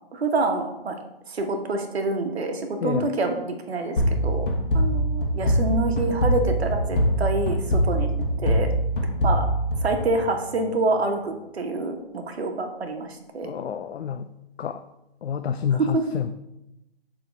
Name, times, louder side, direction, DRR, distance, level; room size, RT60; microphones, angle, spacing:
voice 1, 0.1-1.0 1.3-4.4 4.7-8.1 8.4-8.7 9.2-9.5 9.8-13.5 15.9-16.0, right 2 dB, 80° right, 4 dB, 1.4 m, -27 dB
sound 1, 4.0-10.6, equal, 55° left, 1.4 m, -23 dB
voice 2, 13.4-14.3 14.6-14.8 15.2-16.3, left 8 dB, 85° left, 9 dB, 0.5 m, -28 dB
6.9 x 3.9 x 5.2 m, 0.90 s
hypercardioid pair, 155°, 31 cm